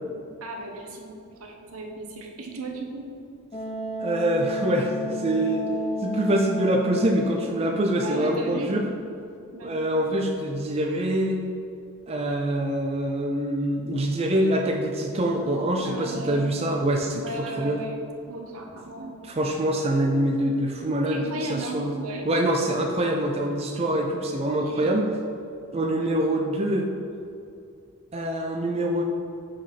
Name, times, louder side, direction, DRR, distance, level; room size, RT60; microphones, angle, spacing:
voice 1, 0.4-1.1 1.4-3.1 7.8-8.7 9.5-9.9 15.8-16.6 17.1-18.0 18.3-19.3 21.1-22.3 24.6-24.9 25.9-26.1, right 2 dB, 80° right, 2 dB, 0.9 m, -36 dB
Wind instrument woodwind instrument, 3.5-9.0, left 1 dB, 30° left, 0.5 m, -33 dB
voice 2, 4.0-5.7 6.0-8.8 9.6-11.4 12.1-17.2 17.6-17.8 19.4-22.0 22.3-25.1 25.7-26.9 28.1-29.0, right 1 dB, 25° right, 1 dB, 0.4 m, -25 dB
5.9 x 5.1 x 4.2 m, 2.5 s
head